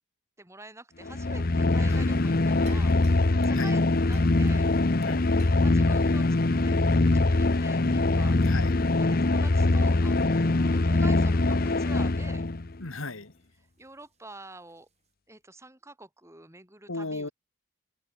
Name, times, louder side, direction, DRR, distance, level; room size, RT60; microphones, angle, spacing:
voice 1, 0.4-4.7 5.6-6.3 6.6-6.8 7.1-8.4 9.0-12.4 13.8-14.9 15.3-17.3, right 2 dB, 15° right, 4.4 m, -47 dB
sound 1, 1.0-12.7, left 2 dB, 45° left, 0.8 m, -23 dB
voice 2, 1.9-2.4 3.5-3.8 5.0-5.5 8.4-8.7 12.8-13.3 16.9-17.3, left 2 dB, 75° left, 2.3 m, -36 dB
sound 2, 1.9-8.5 8.8-8.9 9.5-9.7 10.2-10.5 10.8-10.9 11.5-11.6 14.0-14.1 14.7-14.8, right 2 dB, 30° right, 4.4 m, -53 dB
open air
head